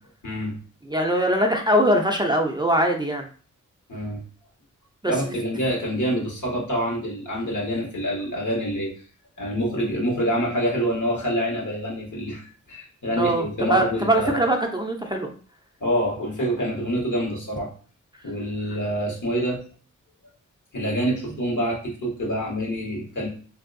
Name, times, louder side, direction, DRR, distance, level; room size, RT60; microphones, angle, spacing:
voice 1, 0.2-0.6 3.9-4.2 5.1-8.9 9.4-14.4 15.8-17.7 18.2-19.6 20.7-23.3, equal, 70° left, -2 dB, 1.3 m, -26 dB
voice 2, 0.9-3.3 5.0-5.3 13.1-15.3, right 1 dB, 15° right, 2 dB, 0.5 m, -22 dB
3.0 x 2.6 x 2.5 m, 0.41 s
cardioid pair, 45°, 32 cm